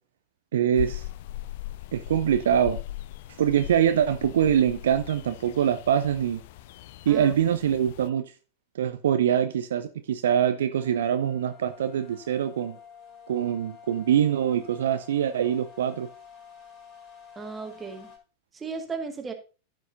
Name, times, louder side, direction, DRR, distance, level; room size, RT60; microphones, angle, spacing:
voice 1, 0.5-1.1 1.9-2.8 3.4-6.4 7.1-8.2 8.7-12.8 13.3-16.1, right 9 dB, 60° right, 0.6 m, -24 dB
sound 1, 0.7-8.1, left 15 dB, 50° left, 0.4 m, -39 dB
sound 2, 10.7-18.2, left 7 dB, 30° left, 4.0 m, -49 dB
voice 2, 17.4-18.1 18.5-19.3, right 4 dB, 15° right, 1.8 m, -35 dB
15.0 x 6.2 x 2.7 m
figure-of-eight pair, 90°, 0 cm